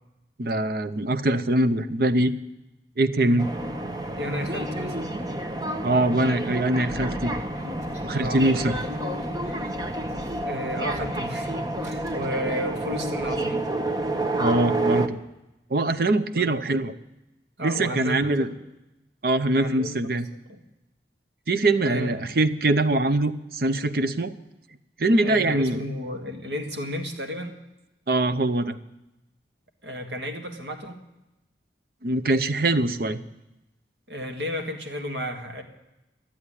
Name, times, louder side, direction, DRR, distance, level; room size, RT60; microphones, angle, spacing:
voice 1, 0.4-2.3 3.0-3.5 5.8-7.3 8.0-8.8 14.4-15.2 15.7-16.9 17.6-18.5 19.2-20.3 21.5-24.4 25.0-25.8 28.1-28.8 32.0-33.2, right 2 dB, 55° right, 13 dB, 0.7 m, -23 dB
sound 1, 3.4-15.1, right 1 dB, 20° right, 0.8 m, -29 dB
voice 2, 4.2-5.1 8.2-8.8 10.4-13.7 16.3-16.6 17.6-18.6 19.5-20.1 21.8-22.2 25.2-27.5 29.8-31.0 34.1-35.6, equal, 75° right, 5 dB, 1.8 m, -32 dB
sound 2, 6.9-11.4 11.6-12.5 12.9-13.0 13.2-13.4, left 1 dB, 40° right, 2.3 m, -41 dB
12.5 x 8.6 x 10.0 m, 0.94 s
head